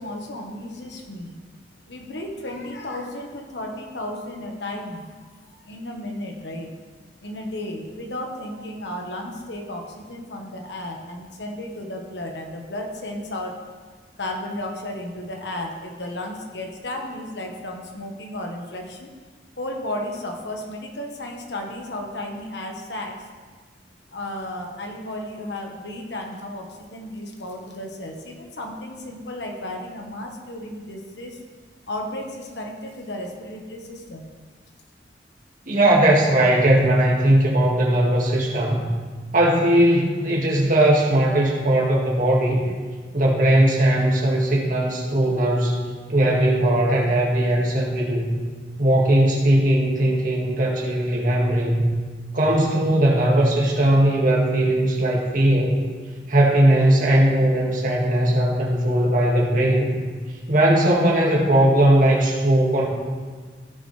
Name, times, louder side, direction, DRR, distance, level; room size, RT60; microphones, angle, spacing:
voice 1, 0.0-1.4 1.9-5.2 5.7-6.7 7.2-13.5 14.2-19.1 19.6-23.1 24.1-31.4 31.9-34.3, left 1 dB, 75° left, 1 dB, 1.4 m, -33 dB
voice 2, 35.7-38.8 39.3-42.6 43.1-45.8 46.1-48.3 48.8-51.9 52.3-55.8 56.3-59.9 60.5-62.9, right 1 dB, 50° right, -3 dB, 2.1 m, -19 dB
16.0 x 7.1 x 3.3 m, 1.5 s
head